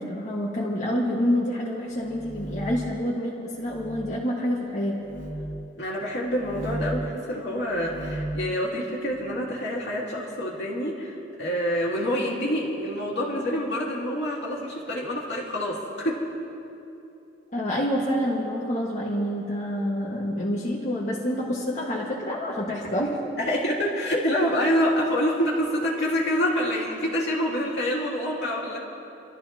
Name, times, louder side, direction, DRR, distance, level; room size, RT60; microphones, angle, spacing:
voice 1, 0.0-5.0 17.5-23.2, equal, 40° left, -6 dB, 1.9 m, -27 dB
sound 1, 1.9-2.9 3.6-3.9 4.9-5.4 6.3-7.0 7.6-8.3, right 1 dB, 90° left, 2.2 m, -35 dB
voice 2, 5.8-16.3 23.4-28.8, equal, 65° left, -4 dB, 2.8 m, -27 dB
30.0 x 13.5 x 3.0 m, 2.9 s
head